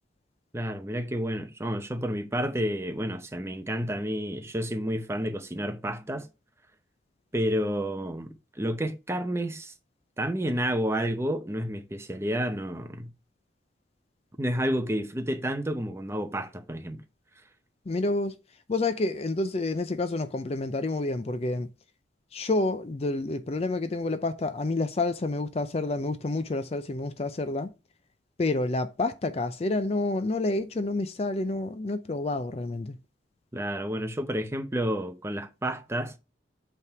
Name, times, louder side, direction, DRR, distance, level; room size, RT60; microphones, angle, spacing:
voice 1, 0.5-6.3 7.3-9.7 10.2-13.1 14.4-17.0 33.5-36.1, equal, 15° right, 0.7 m, -30 dB
voice 2, 17.9-18.4 18.7-21.7 22.3-27.7 28.4-33.0, left 2 dB, 35° left, 0.4 m, -29 dB
8.3 x 3.5 x 4.6 m
head